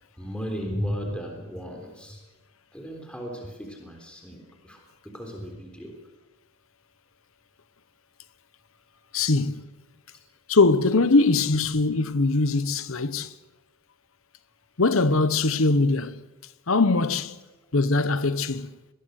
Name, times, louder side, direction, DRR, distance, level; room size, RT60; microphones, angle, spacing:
voice 1, 0.2-2.2 2.7-4.8 5.1-5.9, equal, 5° left, 3.5 m, -35 dB
voice 2, 9.1-9.6 10.5-13.3 14.8-16.1 16.7-17.4 17.7-18.7, left 3 dB, 70° left, 1.0 m, -21 dB
25.0 x 21.0 x 6.5 m
head